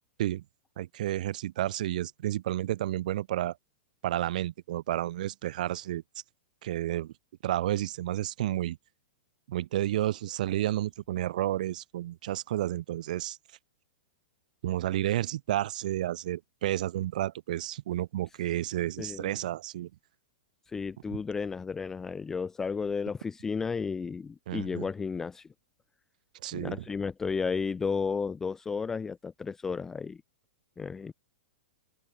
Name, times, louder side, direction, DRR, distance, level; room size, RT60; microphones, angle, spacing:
voice 1, 0.8-3.6 4.0-6.0 6.6-7.1 7.4-8.8 9.5-13.4 14.6-19.9 24.5-24.8 26.4-26.8, right 13 dB, 60° right, 0.5 m, -31 dB
voice 2, 19.0-19.4 20.7-25.5 26.5-30.2 30.8-31.1, left 5 dB, 10° left, 0.4 m, -33 dB
open air
hypercardioid pair, 160°, 5 cm